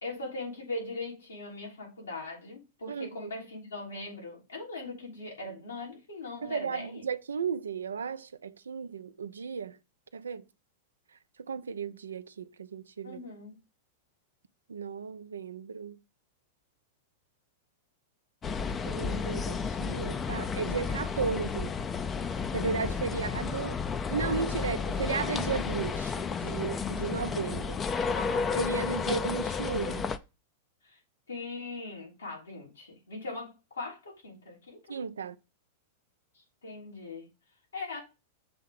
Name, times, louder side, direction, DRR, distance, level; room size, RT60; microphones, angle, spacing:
voice 1, 0.0-7.0 13.0-13.6 28.1-28.6 30.8-31.0 31.3-35.0 36.3-37.3 37.7-38.0, left 2 dB, 85° left, 3.6 m, -40 dB
voice 2, 6.4-9.8 10.1-10.4 11.5-13.2 14.7-16.0 18.8-21.7 22.5-23.7 24.1-27.8 28.5-30.1 34.9-35.4, right 5 dB, 80° right, 0.6 m, -34 dB
sound 1, 18.4-30.2, left 5 dB, 25° left, 0.6 m, -32 dB
6.9 x 3.6 x 6.0 m
hypercardioid pair, 100°, 0 cm